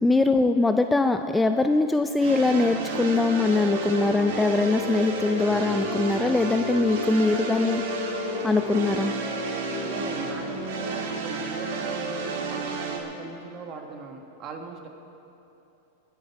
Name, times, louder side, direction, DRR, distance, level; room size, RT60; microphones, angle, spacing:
voice 1, 0.0-7.8 8.4-9.1, left 3 dB, 10° left, 8 dB, 0.4 m, -22 dB
Solina Chords, 2.2-13.0, right 4 dB, 70° right, 2.2 m, -32 dB
sound 1, 2.9-12.9, left 6 dB, 75° left, 1.0 m, -35 dB
voice 2, 9.8-14.9, right 5 dB, 35° right, 3 dB, 1.6 m, -39 dB
20.5 x 9.8 x 4.7 m, 2.9 s
supercardioid pair, 140°, 0 cm